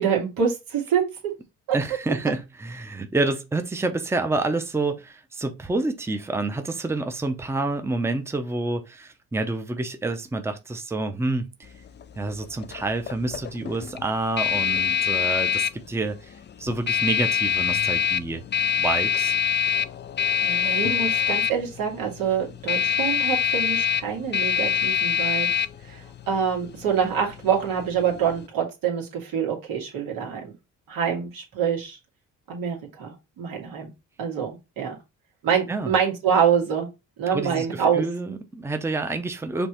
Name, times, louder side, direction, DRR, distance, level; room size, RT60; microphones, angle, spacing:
voice 1, 0.0-1.3 20.4-25.5 25.8-30.5 30.9-32.0 32.5-33.9 34.2-35.0 35.4-36.9 37.2-38.0, right 7 dB, 80° right, 1.9 m, -26 dB
voice 2, 1.7-11.7 12.2-18.4 18.8-19.4 35.7-35.9 37.3-39.7, right 2 dB, 5° right, 0.7 m, -28 dB
sound 1, 11.6-28.5, left 8 dB, 30° left, 0.4 m, -26 dB
5.3 x 3.2 x 3.0 m
cardioid pair, 105°, 34 cm